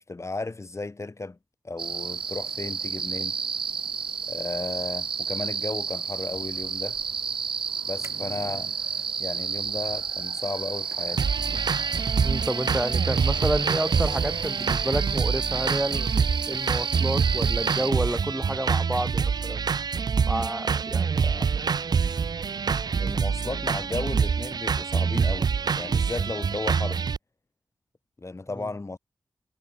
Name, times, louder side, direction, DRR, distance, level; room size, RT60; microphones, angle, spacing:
voice 1, 0.0-1.4 1.6-3.3 4.3-7.0 7.8-8.7 9.2-11.2 21.2-21.6 23.0-27.0 28.2-29.0, left 3 dB, 35° left, 1.6 m, -34 dB
sound 1, 1.8-17.9, right 6 dB, 75° right, 1.5 m, -31 dB
sound 2, 8.0-9.2 10.4-15.0 15.4-15.5, right 2 dB, 35° right, 6.2 m, -50 dB
sound 3, 11.2-27.2, right 6 dB, 50° right, 0.4 m, -26 dB
voice 2, 12.2-16.1 16.5-19.6 20.3-21.1, right 1 dB, 10° right, 2.4 m, -30 dB
cardioid pair, 60°, 9 cm